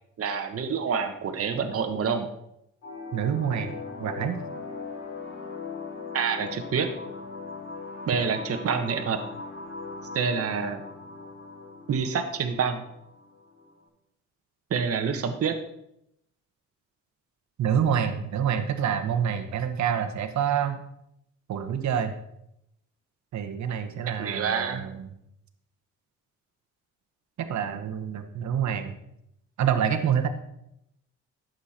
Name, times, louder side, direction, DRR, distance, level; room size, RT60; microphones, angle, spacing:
voice 1, 0.2-2.3 6.1-6.9 8.1-9.2 10.1-10.8 11.9-12.8 14.7-15.6 24.1-24.8, right 6 dB, 50° right, 5 dB, 1.3 m, -27 dB
sound 1, 2.8-13.8, left 4 dB, 55° left, 4.9 m, -39 dB
voice 2, 3.1-4.4 17.6-20.8 21.5-22.1 23.3-25.1 27.5-29.0 29.6-30.3, right 8 dB, 65° right, 8 dB, 1.3 m, -27 dB
12.0 x 7.8 x 4.4 m, 0.79 s
cardioid pair, 90°, 30 cm